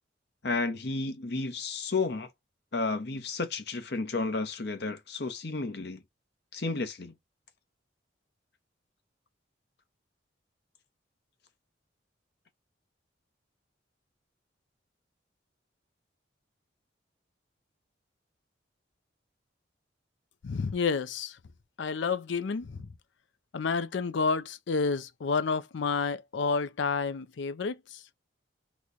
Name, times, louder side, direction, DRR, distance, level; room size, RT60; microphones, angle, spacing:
voice 1, 0.4-2.3 2.7-6.0 6.5-7.1, left 3 dB, 60° left, 0.8 m, -32 dB
voice 2, 20.4-21.4 21.8-22.9 23.5-28.0, left 4 dB, 75° left, 0.5 m, -30 dB
3.0 x 2.2 x 3.8 m
head